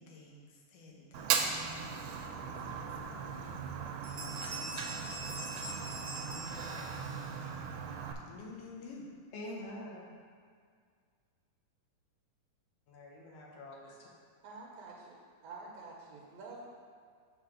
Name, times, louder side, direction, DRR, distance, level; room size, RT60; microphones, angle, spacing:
voice 1, 0.0-3.4 3.6-7.7 8.3-9.1, left 3 dB, 85° left, -2 dB, 2.6 m, -53 dB
Fire, 1.1-8.1, right 6 dB, 85° right, 2.2 m, -38 dB
Bell, 4.0-7.2, right 2 dB, 45° right, 1.1 m, -44 dB
voice 2, 9.3-10.2 12.9-14.1, left 1 dB, 65° left, -2 dB, 1.9 m, -45 dB
voice 3, 14.4-15.2 15.4-16.7, right 3 dB, 70° right, -3 dB, 1.8 m, -48 dB
7.9 x 3.4 x 6.3 m, 2.1 s
omnidirectional pair, 3.7 m